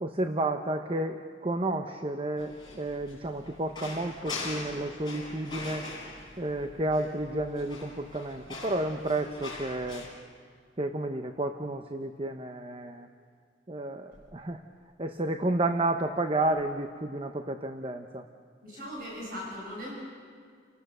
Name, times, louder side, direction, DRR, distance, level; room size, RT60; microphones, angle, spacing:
voice 1, 0.0-5.9 6.4-10.0 10.8-13.1 13.7-14.6 15.0-18.3, right 2 dB, 30° right, 6 dB, 0.8 m, -31 dB
sound 1, 2.4-10.1, left 3 dB, 25° left, 6.1 m, -42 dB
voice 2, 18.6-19.9, equal, 50° right, -3 dB, 6.2 m, -39 dB
30.0 x 18.5 x 6.8 m, 2.1 s
head